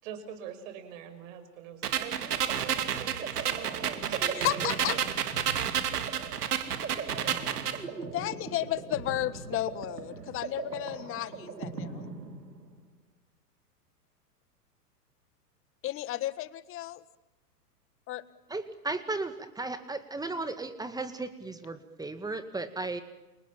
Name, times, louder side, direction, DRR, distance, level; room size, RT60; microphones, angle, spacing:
voice 1, 0.0-4.3 4.6-4.7, right 9 dB, 50° right, 8 dB, 6.1 m, -43 dB
sound 1, 1.8-7.8, right 9 dB, 70° right, 2.7 m, -31 dB
sound 2, 2.0-12.9, right 4 dB, 90° right, 3.2 m, -40 dB
voice 2, 4.3-5.0 8.0-12.1 15.8-17.0 18.1-18.2, left 14 dB, 25° left, 15 dB, 1.5 m, -33 dB
voice 3, 18.5-23.0, right 3 dB, 10° right, 9 dB, 2.0 m, -35 dB
30.0 x 27.5 x 7.3 m, 1.0 s
hypercardioid pair, 110°, 48 cm